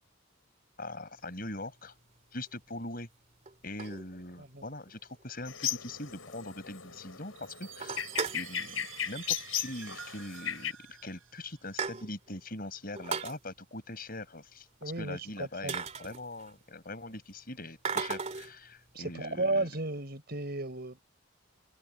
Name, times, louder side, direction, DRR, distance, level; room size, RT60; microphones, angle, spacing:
voice 1, 0.8-1.9 2.3-3.1 3.6-8.0 8.3-14.7 15.0-19.7, left 2 dB, 45° left, 5.5 m, -42 dB
sound 1, 1.5-1.7 2.5-2.6 3.5-4.5 4.9-5.0 5.2-5.3 5.7-5.8 6.1-6.2 6.5-7.0 7.3-7.4 7.7-8.5 9.6-9.8 10.1-10.2 10.9-11.0 11.3-12.4 12.9-13.4 15.1-15.2 15.7-16.7 17.8-18.6, right 5 dB, 35° right, 2.7 m, -36 dB
sound 2, 5.5-10.7, left 10 dB, 85° left, 7.4 m, -37 dB
Chime, 7.4-11.9, right 11 dB, 80° right, 7.8 m, -48 dB
voice 2, 14.8-15.7 18.9-21.0, right 2 dB, 50° right, 5.0 m, -34 dB
head